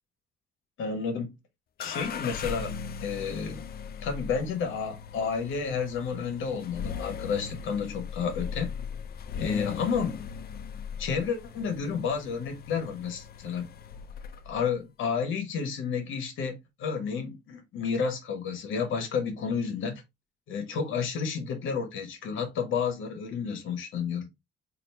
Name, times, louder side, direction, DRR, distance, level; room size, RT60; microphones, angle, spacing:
voice 1, 0.8-1.3 1.8-2.7 3.0-3.6 4.0-8.7 9.4-10.2 11.0-13.7 14.4-20.0 20.5-24.3, left 6 dB, 80° left, 1.1 m, -31 dB
sound 1, 1.8-14.6, left 7 dB, 50° left, 0.5 m, -39 dB
3.9 x 2.6 x 3.2 m
cardioid pair, 90°, 20 cm